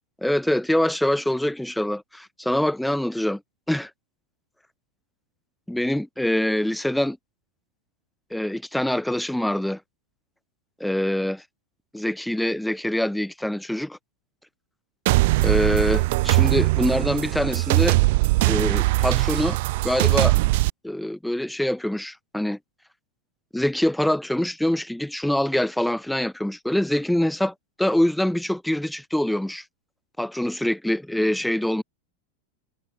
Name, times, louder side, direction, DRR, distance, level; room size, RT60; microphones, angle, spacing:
voice 1, 0.2-3.4 3.7-3.9 5.7-7.2 8.3-9.8 10.8-11.4 11.9-14.0 15.4-18.0 18.5-19.6 19.8-20.3 20.8-22.6 23.5-29.6 30.2-31.8, left 1 dB, ahead, 0.9 m, -24 dB
sound 1, 15.1-20.7, right 21 dB, 50° right, 0.3 m, -20 dB
figure-of-eight pair, 90°, 0 cm